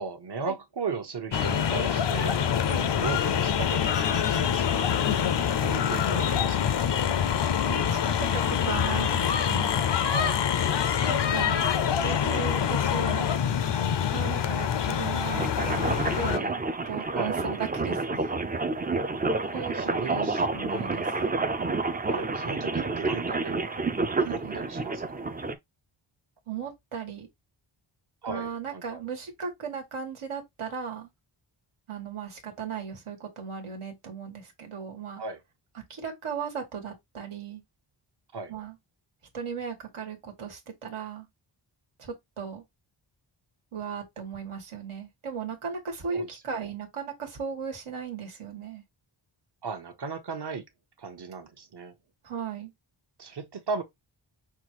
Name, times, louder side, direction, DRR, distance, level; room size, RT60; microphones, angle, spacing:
voice 1, 0.0-2.5 3.0-5.0 5.6-6.9 10.1-10.4 12.2-12.4 17.1-17.3 19.5-20.5 22.1-23.8 24.2-25.3 28.2-29.0 35.2-35.4 38.3-38.5 46.1-46.3 46.6-46.7 49.6-50.6 51.0-51.9 53.2-53.8, right 4 dB, 55° right, 0.9 m, -36 dB
sound 1, 1.3-16.4, left 8 dB, 55° left, 0.6 m, -25 dB
voice 2, 7.6-8.3 8.6-9.8 11.1-11.7 12.0-13.3 14.1-18.3 19.5-20.3 20.5-21.1 24.2-24.6 26.5-27.3 28.2-31.1 31.9-35.2 35.9-37.6 38.5-38.8 39.3-41.3 42.0-42.6 43.7-48.8 52.2-52.7, right 6 dB, 80° right, 1.5 m, -36 dB
sound 2, 15.3-25.5, right 3 dB, 20° right, 0.4 m, -29 dB
5.8 x 2.4 x 2.9 m
wide cardioid pair, 115°, 50 cm